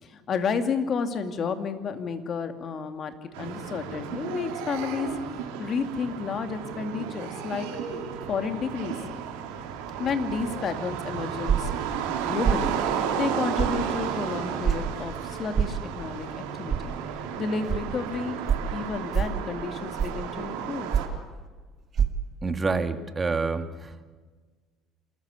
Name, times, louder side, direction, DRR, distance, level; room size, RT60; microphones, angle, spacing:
voice 1, 0.0-5.1 5.6-7.7 8.3-9.0 10.0-11.9 12.3-16.9 17.4-18.4 18.7-20.9, left 5 dB, 45° left, 8 dB, 2.5 m, -31 dB
sound 1, 3.3-21.1, right 7 dB, 90° right, 3.5 m, -33 dB
sound 2, 11.5-11.8 12.4-12.7 13.6-13.8 14.6-14.8 15.5-15.8 16.7-16.8 17.7-17.8 18.5-18.7 19.1-19.4 20.0-20.3 20.9-21.2 21.9-22.1, right 8 dB, 45° right, 1.9 m, -24 dB
voice 2, 22.4-24.0, right 4 dB, 25° right, 8 dB, 2.0 m, -28 dB
27.5 x 14.0 x 8.4 m, 1.4 s
supercardioid pair, 90°, 0 cm